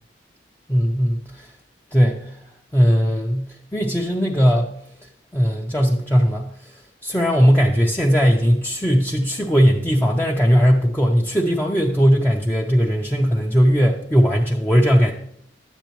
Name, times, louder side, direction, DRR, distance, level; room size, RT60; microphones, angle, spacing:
voice 1, 0.7-1.5 1.9-2.3 2.7-4.7 5.3-6.5 7.0-15.1, equal, 10° left, -1 dB, 0.5 m, -18 dB
11.0 x 8.0 x 3.0 m, 0.69 s
head